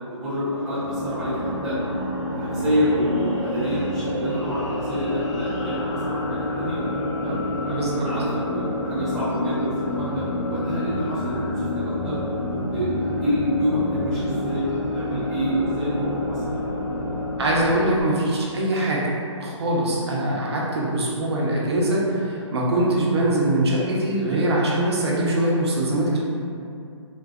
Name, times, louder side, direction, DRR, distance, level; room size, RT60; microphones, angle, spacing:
voice 1, 0.1-1.8 2.3-6.8 7.2-10.2 10.5-12.2 12.5-14.6 14.9-17.0, equal, ahead, -16 dB, 0.8 m, -27 dB
sound 1, 0.7-18.0, left 1 dB, 15° left, 0.3 m, -28 dB
voice 2, 7.7-8.1 17.4-19.1 19.4-26.2, right 1 dB, 55° right, -4 dB, 0.7 m, -22 dB
3.8 x 2.4 x 2.4 m, 2.5 s
hypercardioid pair, 165°, 16 cm